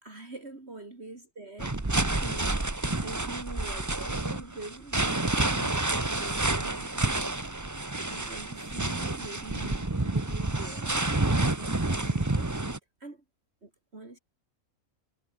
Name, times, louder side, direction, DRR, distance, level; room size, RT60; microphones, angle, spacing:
voice 1, 0.0-1.8 2.2-7.8 8.0-12.6 13.0-13.2 13.6-14.2, right 2 dB, 45° right, 3.7 m, -44 dB
sound 1, 1.6-12.8, right 2 dB, 15° right, 1.0 m, -29 dB
omnidirectional pair, 1.6 m